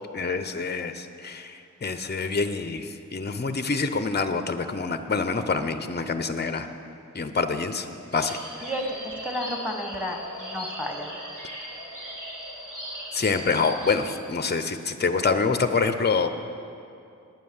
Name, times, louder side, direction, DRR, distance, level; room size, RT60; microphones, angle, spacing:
voice 1, 0.1-6.7 7.1-7.9 8.1-8.4 13.1-16.4, left 4 dB, 30° left, 9 dB, 0.7 m, -26 dB
sound 1, 8.1-14.1, equal, 75° right, 3.4 m, -38 dB
voice 2, 8.6-11.1, equal, 5° right, 2 dB, 1.7 m, -32 dB
9.6 x 9.1 x 7.1 m, 2.6 s
wide cardioid pair, 40°, 31 cm